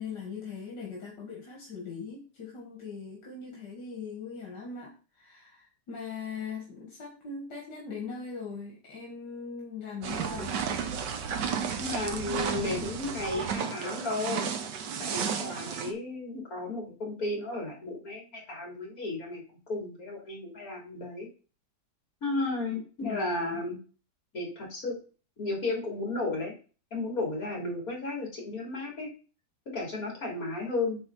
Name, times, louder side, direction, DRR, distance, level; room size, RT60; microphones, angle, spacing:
voice 1, 0.0-10.7 22.7-23.6, left 5 dB, 80° left, -1 dB, 2.3 m, -40 dB
sound 1, 10.0-15.9, right 7 dB, 90° right, 1.6 m, -33 dB
voice 2, 11.8-14.5 15.0-19.4 19.7-21.3 22.2-23.8 24.3-25.0 25.4-26.5 26.9-29.1 29.7-31.0, left 2 dB, 55° left, -1 dB, 3.5 m, -33 dB
8.6 x 3.8 x 5.6 m, 0.36 s
omnidirectional pair, 1.8 m